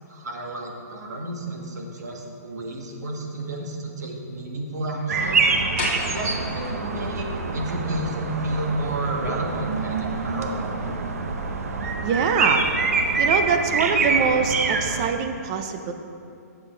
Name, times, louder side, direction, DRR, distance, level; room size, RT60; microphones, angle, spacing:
voice 1, 0.1-5.4 6.1-11.1, right 1 dB, 85° right, 1 dB, 1.5 m, -31 dB
sound 1, 5.1-15.1, right 4 dB, 60° right, 0.8 m, -25 dB
sound 2, 5.8-11.4, left 4 dB, 40° left, 1.1 m, -39 dB
voice 2, 12.0-12.7 13.2-15.9, right 6 dB, 20° right, 7 dB, 0.4 m, -24 dB
8.1 x 7.6 x 4.4 m, 2.5 s
hypercardioid pair, 175°, 9 cm